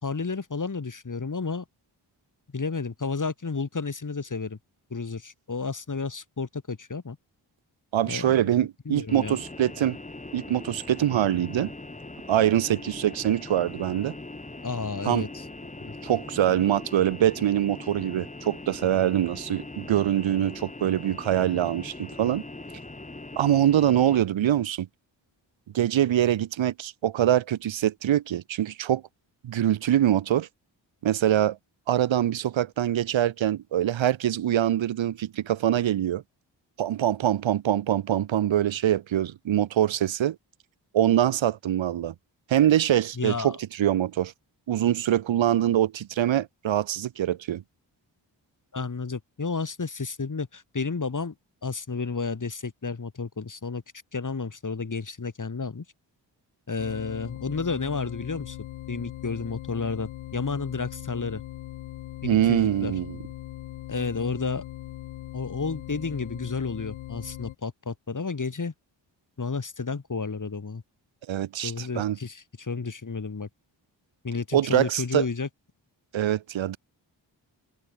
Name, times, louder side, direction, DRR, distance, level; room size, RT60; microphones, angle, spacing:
voice 1, 0.0-1.6 2.5-4.6 4.9-7.2 8.1-8.4 8.9-9.4 14.6-15.5 15.8-15.9 43.2-43.6 48.7-51.3 51.6-53.8 54.1-55.8 56.7-58.6 58.9-61.4 62.2-62.9 63.9-64.6 65.3-68.7 69.4-70.8 71.6-73.5 74.2-75.5, left 4 dB, 40° left, 3.8 m, -31 dB
voice 2, 7.9-10.0 10.3-11.7 12.3-14.1 15.0-15.3 16.0-22.4 23.4-24.9 25.7-29.0 29.4-30.5 31.0-31.6 31.9-36.2 36.8-40.4 40.9-42.1 42.5-44.3 44.7-47.6 62.2-63.2 71.3-72.2 74.5-75.2 76.1-76.8, right 11 dB, 75° right, 1.1 m, -24 dB
sound 1, 9.1-24.2, left 2 dB, 15° left, 1.6 m, -41 dB
sound 2, 56.8-67.5, left 14 dB, 85° left, 0.8 m, -40 dB
cardioid pair, 45°, 46 cm